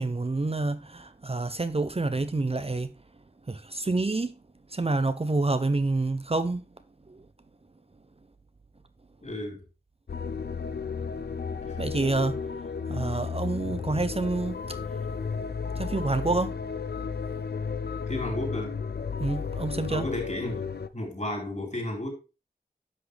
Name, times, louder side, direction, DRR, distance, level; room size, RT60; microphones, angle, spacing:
voice 1, 0.0-2.9 3.5-4.3 4.7-6.6 7.1-7.2 11.8-12.4 12.9-14.8 15.8-16.6 19.2-20.1, right 2 dB, 35° right, 0.6 m, -28 dB
voice 2, 9.2-9.6 11.7-11.8 18.1-18.7 19.9-20.6 20.9-22.1, left 1 dB, 45° left, 4.2 m, -33 dB
sound 1, 10.1-20.9, left 5 dB, 75° left, 0.5 m, -33 dB
10.0 x 6.0 x 3.3 m
wide cardioid pair, 45°, 17 cm